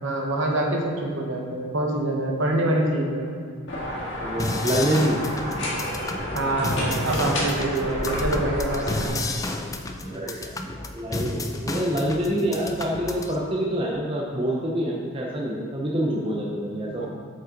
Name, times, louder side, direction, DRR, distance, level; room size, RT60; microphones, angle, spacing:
voice 1, 0.0-3.3 6.3-9.2 17.0-17.1, right 1 dB, 65° right, 0 dB, 1.0 m, -25 dB
sound 1, 3.7-9.1, equal, 60° left, 1.6 m, -30 dB
voice 2, 4.2-5.2 10.0-10.5 10.9-17.1, right 1 dB, 25° right, -3 dB, 0.6 m, -26 dB
sound 2, 4.4-13.4, left 2 dB, 15° left, 0.3 m, -32 dB
7.9 x 5.4 x 3.8 m, 2.4 s
head